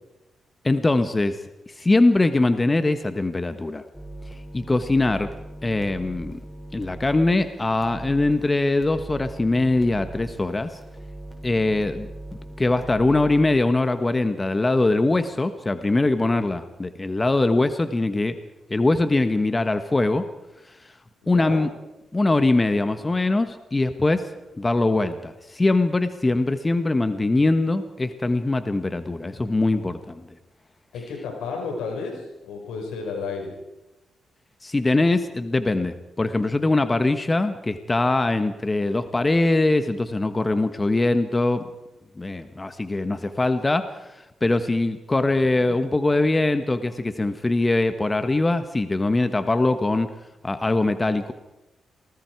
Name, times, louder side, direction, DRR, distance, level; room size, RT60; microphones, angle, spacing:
voice 1, 0.6-1.4 1.7-3.8 4.5-5.3 5.6-6.4 6.7-10.8 11.4-12.1 12.6-18.4 18.7-20.2 21.3-21.7 22.1-24.3 24.6-30.2 34.6-41.7 42.2-50.1 50.4-51.3, left 2 dB, 25° left, 10 dB, 1.5 m, -22 dB
sound 1, 3.9-13.6, right 2 dB, ahead, 5.8 m, -40 dB
voice 2, 21.2-21.6 30.9-33.5, left 4 dB, 85° left, 2 dB, 5.2 m, -32 dB
27.5 x 19.5 x 4.8 m, 0.99 s
supercardioid pair, 50°, 0 cm